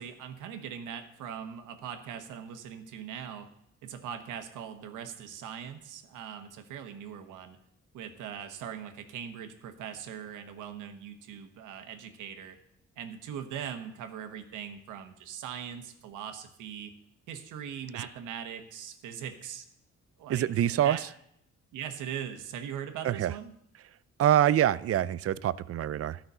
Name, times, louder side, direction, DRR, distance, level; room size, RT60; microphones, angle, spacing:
voice 1, 0.0-3.5 3.8-7.6 7.9-12.6 13.0-16.9 17.3-19.7 20.2-21.0 21.7-23.5, right 8 dB, 90° right, 7 dB, 1.3 m, -41 dB
voice 2, 20.3-21.0 23.0-23.3 24.2-26.2, right 11 dB, 50° right, 18 dB, 0.5 m, -25 dB
13.0 x 5.9 x 6.7 m, 0.74 s
cardioid pair, 90°, 30 cm